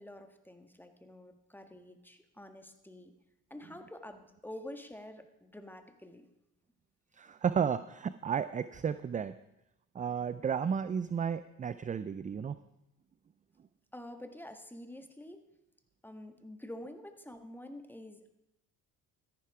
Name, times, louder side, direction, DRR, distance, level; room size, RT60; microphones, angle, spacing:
voice 1, 0.0-3.1 3.5-6.3 13.9-15.5 16.0-18.3, left 1 dB, 5° left, 7 dB, 1.5 m, -48 dB
voice 2, 7.1-9.3 9.9-12.6, right 7 dB, 20° right, 14 dB, 0.4 m, -33 dB
13.5 x 10.5 x 4.8 m, 0.88 s
supercardioid pair, 85°, 41 cm